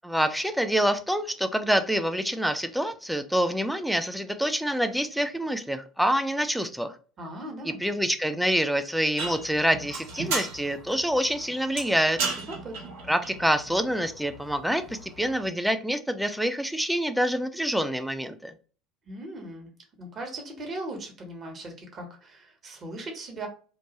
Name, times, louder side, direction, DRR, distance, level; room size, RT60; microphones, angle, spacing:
voice 1, 0.0-6.9 7.6-12.2 13.1-18.5, equal, ahead, 9 dB, 0.4 m, -26 dB
voice 2, 7.2-7.8 12.3-12.9 19.1-19.7 20.0-23.5, right 1 dB, 40° right, 3 dB, 1.1 m, -38 dB
sound 1, 9.2-15.5, right 4 dB, 65° right, 0.8 m, -36 dB
3.0 x 2.1 x 3.0 m, 0.38 s
figure-of-eight pair, 65°, 0 cm